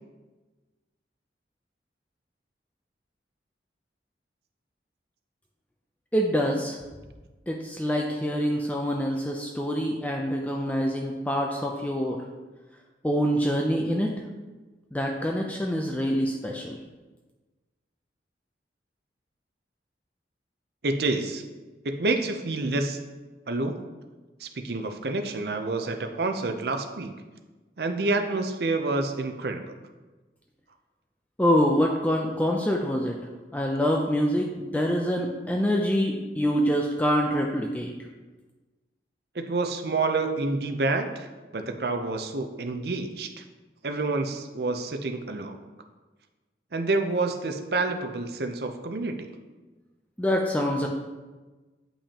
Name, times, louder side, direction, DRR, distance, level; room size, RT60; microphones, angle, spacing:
voice 1, 6.1-6.8 7.5-12.2 13.0-14.1 14.9-16.8 31.4-33.2 33.5-37.9 50.2-50.9, equal, 10° left, 0 dB, 0.4 m, -25 dB
voice 2, 20.8-21.4 21.8-23.0 23.5-23.8 24.4-27.1 27.8-29.7 39.3-43.4 43.8-45.6 46.7-49.3, right 3 dB, 60° right, 6 dB, 0.6 m, -28 dB
8.7 x 5.5 x 2.9 m, 1.2 s
head